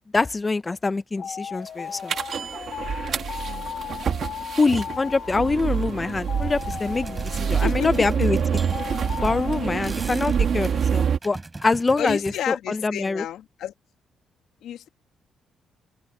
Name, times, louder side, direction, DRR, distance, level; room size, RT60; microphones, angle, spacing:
voice 1, 0.1-2.1 4.6-8.4 9.2-13.3, left 3 dB, 25° left, 0.7 m, -24 dB
sound 1, 1.2-9.8, left 8 dB, 60° left, 1.1 m, -37 dB
sound 2, 2.1-11.2, right 7 dB, 55° right, 2.2 m, -26 dB
voice 2, 3.5-3.9 7.6-8.1 12.0-13.7 14.6-14.9, left 11 dB, 80° left, 2.1 m, -31 dB
sound 3, 6.6-12.4, right 2 dB, 20° right, 6.6 m, -41 dB
open air
cardioid pair, 90°, 0 cm